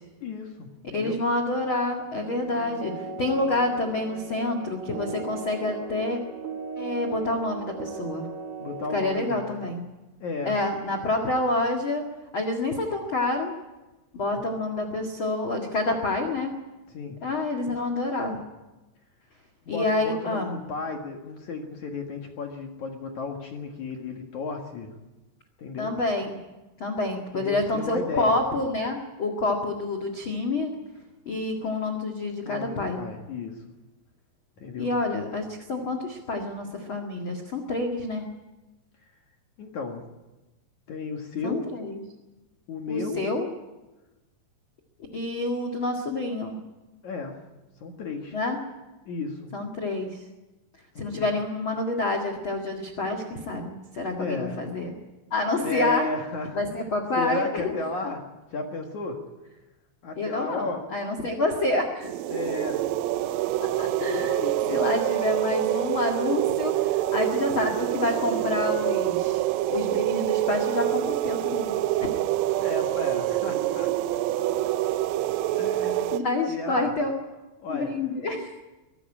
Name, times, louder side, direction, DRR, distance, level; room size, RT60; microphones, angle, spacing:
voice 1, 0.2-1.2 8.6-9.6 10.2-10.6 14.3-14.4 16.9-17.2 19.7-24.9 25.6-25.9 27.3-28.4 32.4-33.6 34.6-34.9 39.6-40.0 40.9-41.7 42.7-43.2 47.0-47.4 47.8-48.4 49.1-49.5 50.9-51.3 54.2-54.6 55.6-56.9 57.2-58.2 58.5-59.2 60.0-60.8 62.3-62.8 63.9-64.3 72.6-73.9 75.6-76.2 76.5-76.9 77.6-77.9, left 3 dB, 55° left, 3 dB, 2.1 m, -34 dB
voice 2, 0.9-6.2 6.8-8.3 8.9-9.8 10.4-12.0 12.3-13.5 14.1-16.5 17.2-18.4 19.7-20.5 25.8-26.4 26.8-30.7 31.2-33.0 34.8-38.3 41.4-42.0 42.9-43.5 45.1-46.6 48.3-48.6 49.5-50.2 51.0-54.9 55.3-56.1 56.5-57.8 60.2-62.1 63.6-69.4 69.7-71.8 76.1-77.1 77.7-78.5, left 2 dB, 80° left, 5 dB, 1.1 m, -28 dB
sound 1, 2.1-9.0, right 4 dB, 70° right, 1.3 m, -37 dB
sound 2, 62.0-76.2, right 14 dB, 85° right, 3.4 m, -26 dB
23.0 x 13.0 x 9.8 m, 1.1 s
omnidirectional pair, 5.7 m